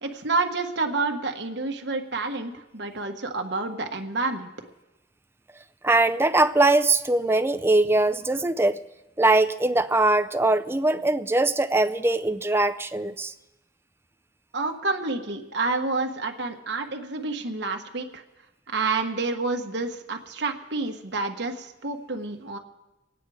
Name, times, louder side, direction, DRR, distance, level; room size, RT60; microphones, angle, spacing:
voice 1, 0.0-4.5 14.5-18.2 18.7-22.6, right 3 dB, 65° right, 1.3 m, -29 dB
voice 2, 5.8-8.8 9.2-13.3, right 2 dB, 15° right, 0.5 m, -21 dB
24.0 x 9.2 x 4.9 m
head